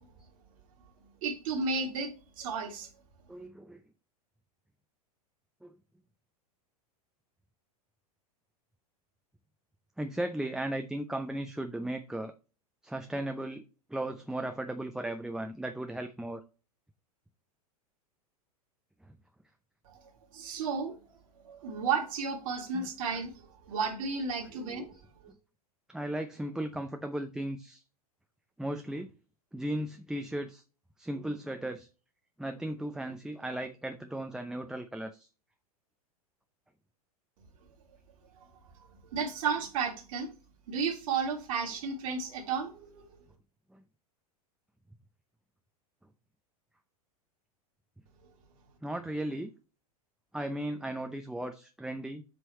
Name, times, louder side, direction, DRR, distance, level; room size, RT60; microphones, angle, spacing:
voice 1, 1.2-2.9 19.8-20.0 20.3-21.0 21.4-25.0 25.2-25.3 38.8-40.3 40.7-43.2, right 5 dB, 60° right, 2.2 m, -33 dB
voice 2, 3.3-3.8 5.6-5.8 10.0-12.3 12.8-13.6 13.9-16.4 22.7-22.9 24.5-24.9 25.9-27.8 28.6-29.1 29.5-30.6 31.0-31.9 32.4-35.3 43.7-43.8 48.8-49.5 50.3-52.2, right 1 dB, 5° right, 0.7 m, -36 dB
7.8 x 4.7 x 4.3 m
figure-of-eight pair, 90°, 20 cm